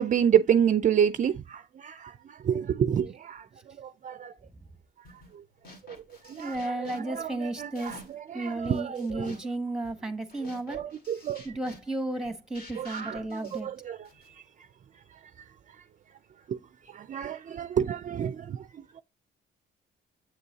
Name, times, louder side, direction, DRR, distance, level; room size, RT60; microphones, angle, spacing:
voice 1, 0.0-2.1 2.4-3.4 3.8-4.3 6.3-6.7 7.1-8.0 8.3-9.3 10.7-11.4 12.8-14.0 16.5-16.6 16.9-18.6, right 9 dB, 40° right, 0.4 m, -28 dB
sound 1, 5.0-5.4 5.6-8.3 8.6-14.3, left 1 dB, 50° left, 2.1 m, -51 dB
voice 2, 6.4-8.0 8.3-10.8 11.4-13.7, right 2 dB, 5° right, 1.1 m, -33 dB
8.1 x 6.7 x 2.7 m
cardioid pair, 90°, 20 cm